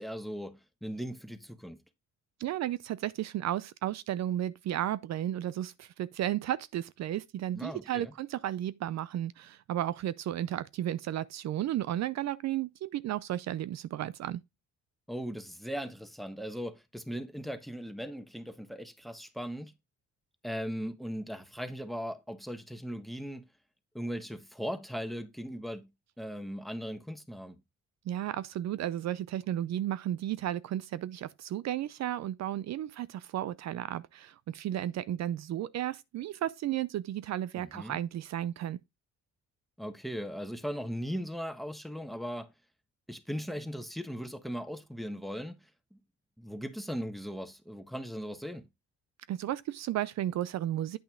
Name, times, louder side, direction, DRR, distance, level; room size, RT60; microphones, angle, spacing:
voice 1, 0.0-1.8 7.5-8.1 15.1-19.7 20.4-23.4 23.9-25.9 26.2-27.6 37.6-38.0 39.8-42.5 43.1-45.6 45.9-46.0 46.4-48.7, equal, ahead, 1.2 m, -38 dB
voice 2, 2.4-14.4 28.1-38.8 49.3-51.0, right 12 dB, 60° right, 0.5 m, -33 dB
8.8 x 5.7 x 3.6 m
cardioid pair, 90°, 30 cm